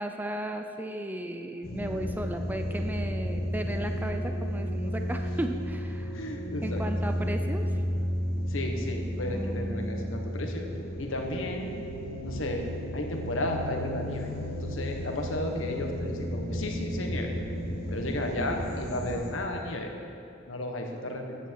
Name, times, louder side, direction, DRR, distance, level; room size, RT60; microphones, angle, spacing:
voice 1, 0.0-6.2 6.6-7.7 9.3-10.1, right 1 dB, 10° right, 5 dB, 0.5 m, -35 dB
sound 1, 1.6-19.3, equal, 55° left, 1.7 m, -33 dB
voice 2, 6.1-6.8 8.5-10.7 11.0-11.7 12.2-12.6 12.9-14.3 14.6-17.3 17.9-19.9 20.5-21.4, left 1 dB, 80° left, 2 dB, 1.5 m, -33 dB
14.5 x 9.1 x 4.7 m, 2.7 s
head